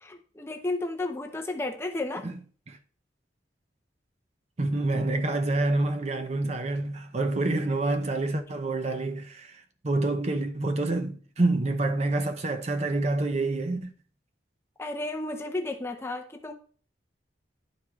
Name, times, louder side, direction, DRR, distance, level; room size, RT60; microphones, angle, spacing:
voice 1, 0.0-2.3 14.8-16.5, left 2 dB, 15° left, 0.7 m, -33 dB
voice 2, 4.6-13.9, right 2 dB, 35° right, 0.6 m, -27 dB
11.5 x 4.7 x 2.3 m
head